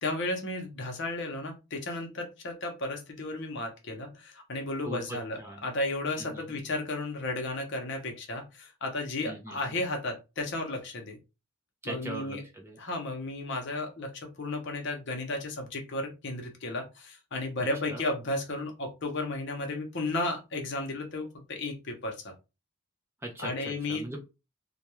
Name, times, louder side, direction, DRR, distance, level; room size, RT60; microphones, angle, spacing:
voice 1, 0.0-11.2 11.8-12.4 12.8-14.1 14.4-22.3 23.4-24.0, left 2 dB, 55° left, 4 dB, 0.7 m, -34 dB
voice 2, 4.8-5.7 6.2-6.6 9.2-9.8 11.8-12.8 17.9-18.0 23.2-24.2, right 2 dB, 10° right, 0 dB, 0.4 m, -41 dB
2.2 x 2.2 x 2.9 m, 0.27 s
head